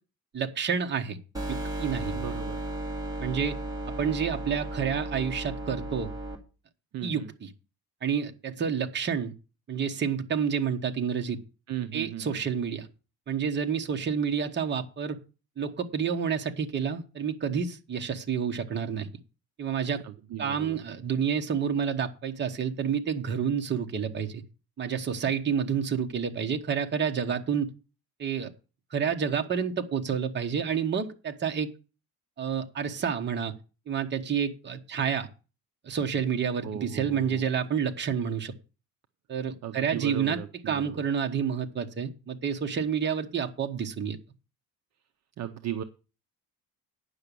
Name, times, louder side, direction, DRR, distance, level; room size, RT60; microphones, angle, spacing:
voice 1, 0.3-1.2 1.5-2.2 3.2-3.6 4.0-6.1 7.0-7.5 8.0-9.3 9.7-11.4 11.9-12.9 13.3-15.2 15.6-19.1 19.6-20.0 20.4-24.4 24.8-27.7 28.2-28.5 28.9-31.7 32.4-33.5 33.9-35.3 35.8-38.5 39.3-40.4 40.7-44.2, right 7 dB, 30° right, 1.1 m, -29 dB
sound 1, 1.3-6.3, right 1 dB, 10° right, 1.9 m, -34 dB
voice 2, 2.1-2.6 6.9-7.3 11.7-12.4 20.0-20.8 36.6-37.5 39.6-41.0 45.4-45.8, right 10 dB, 45° right, 0.7 m, -36 dB
9.6 x 6.0 x 6.8 m
cardioid pair, 175°, 36 cm